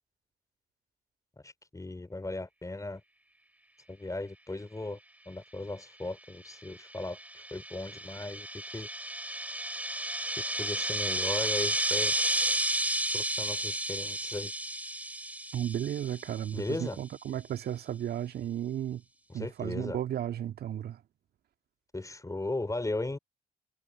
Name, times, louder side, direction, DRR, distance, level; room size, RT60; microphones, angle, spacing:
voice 1, 1.4-3.0 3.9-5.0 5.2-8.9 10.6-12.1 13.1-14.5 16.5-17.0 19.3-20.0 21.9-23.2, left 2 dB, 15° left, 4.9 m, -37 dB
sound 1, 6.7-16.5, right 1 dB, 10° right, 3.6 m, -32 dB
voice 2, 15.5-19.0 19.3-21.0, right 11 dB, 55° right, 2.2 m, -34 dB
figure-of-eight pair, 45°, 19 cm